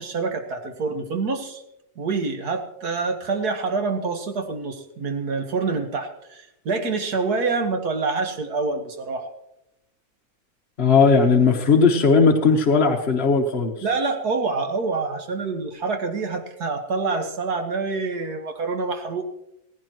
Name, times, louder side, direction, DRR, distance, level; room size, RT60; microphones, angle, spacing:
voice 1, 0.0-1.6 2.0-9.3 13.8-19.3, right 4 dB, 90° right, 4 dB, 2.0 m, -26 dB
voice 2, 10.8-13.7, left 4 dB, 45° left, 1 dB, 1.3 m, -17 dB
17.5 x 15.5 x 3.0 m, 0.83 s
omnidirectional pair, 1.6 m